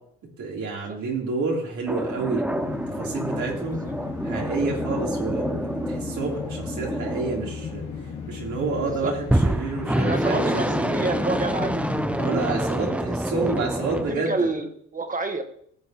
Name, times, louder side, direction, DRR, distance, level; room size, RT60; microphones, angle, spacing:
voice 1, 0.4-2.5 3.0-3.8 4.2-5.6 5.9-7.8 8.3-10.9 12.2-14.6, right 3 dB, 70° right, -3 dB, 3.6 m, -29 dB
sound 1, 1.9-8.2 9.2-14.2, right 1 dB, 5° right, 0.7 m, -27 dB
sound 2, 2.5-12.6, left 6 dB, 80° left, 2.5 m, -36 dB
voice 2, 9.9-11.8 12.4-13.0 13.4-13.5 14.1-15.4, right 2 dB, 25° right, 6 dB, 1.5 m, -29 dB
15.5 x 7.6 x 3.0 m, 0.66 s
cardioid pair, 90°, 30 cm